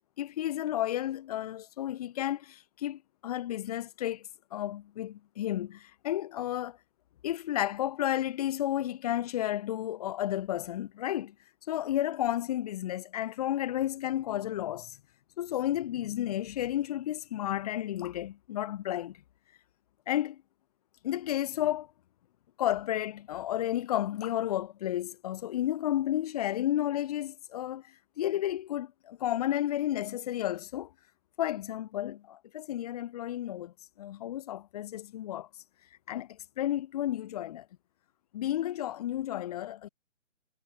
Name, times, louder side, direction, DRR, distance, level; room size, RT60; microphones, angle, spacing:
voice 1, 0.2-6.8 7.2-11.3 11.7-15.0 15.4-19.2 20.1-20.4 21.0-21.9 22.6-27.8 28.2-30.9 31.4-35.5 36.1-37.7 38.3-39.9, left 12 dB, 30° left, 1.8 m, -32 dB
hypercardioid pair, 155°, 39 cm